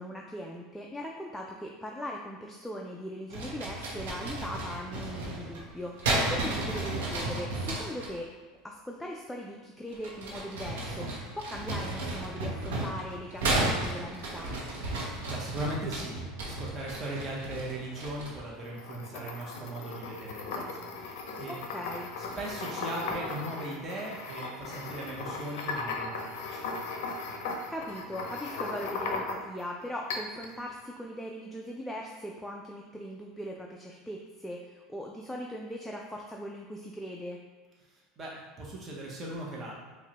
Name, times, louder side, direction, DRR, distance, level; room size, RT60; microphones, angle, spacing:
voice 1, 0.0-8.3 8.6-14.5 21.5-22.1 27.7-37.4, equal, 5° left, -1 dB, 0.3 m, -40 dB
sound 1, 3.3-8.1 9.9-18.5, right 2 dB, 90° right, 0.7 m, -33 dB
voice 2, 15.0-21.6 22.4-26.6 37.9-39.7, right 1 dB, 30° right, -4 dB, 0.8 m, -39 dB
sound 2, 18.6-29.6 30.1-30.5, left 3 dB, 80° left, 0.5 m, -37 dB
4.6 x 2.2 x 2.9 m, 1.3 s
supercardioid pair, 120°, 0 cm